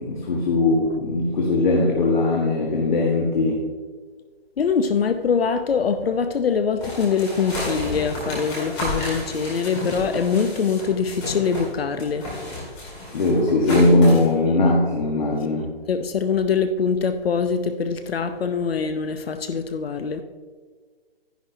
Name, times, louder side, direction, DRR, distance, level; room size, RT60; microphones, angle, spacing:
voice 1, 0.1-3.6 13.1-15.7, left 2 dB, 50° left, -1 dB, 1.6 m, -19 dB
voice 2, 4.6-12.3 15.9-20.2, left 6 dB, 70° left, 9 dB, 0.8 m, -23 dB
sound 1, 6.8-11.7 12.0-14.3, left 1 dB, 15° left, 2.0 m, -31 dB
12.0 x 10.0 x 2.8 m, 1.5 s
hypercardioid pair, 165°, 31 cm